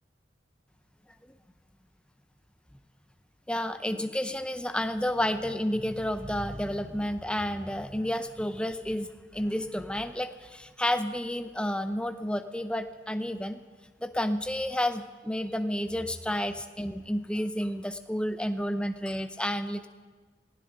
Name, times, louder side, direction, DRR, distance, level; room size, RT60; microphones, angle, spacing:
voice 1, 3.5-13.6 14.0-19.9, left 1 dB, 5° left, 9 dB, 0.6 m, -31 dB
20.0 x 16.0 x 3.9 m, 1.4 s
head